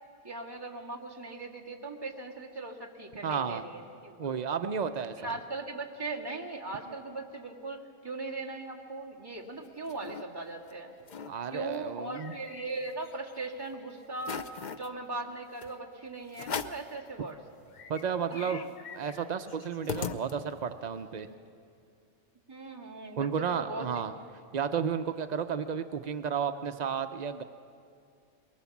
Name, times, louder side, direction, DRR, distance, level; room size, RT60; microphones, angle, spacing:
voice 1, 0.2-4.1 5.2-10.9 11.5-14.4 14.7-17.4 18.3-18.7 22.5-23.9, right 3 dB, 15° right, -3 dB, 2.0 m, -39 dB
voice 2, 3.2-3.6 4.2-5.4 11.3-12.3 17.9-18.6 18.9-21.3 23.2-24.1 24.5-27.4, right 7 dB, 75° right, 9 dB, 0.4 m, -32 dB
sound 1, 9.4-10.2 10.7-10.8 11.0-11.3 11.7-13.3 13.7-13.8 14.2-14.9 15.6-15.7 16.3-16.9 17.4-17.5 17.7-20.7, left 6 dB, 50° left, 0.5 m, -40 dB
22.5 x 19.0 x 7.2 m, 2.4 s
omnidirectional pair, 1.5 m